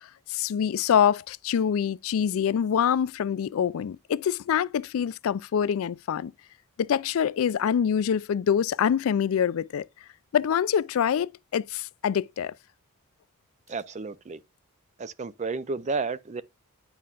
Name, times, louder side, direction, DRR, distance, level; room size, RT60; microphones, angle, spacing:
voice 1, 0.3-6.3 6.8-9.9 10.3-12.5, left 8 dB, 65° left, 0.3 m, -25 dB
voice 2, 13.7-14.4 15.0-16.4, right 4 dB, 30° right, 0.4 m, -32 dB
9.5 x 5.5 x 2.4 m
head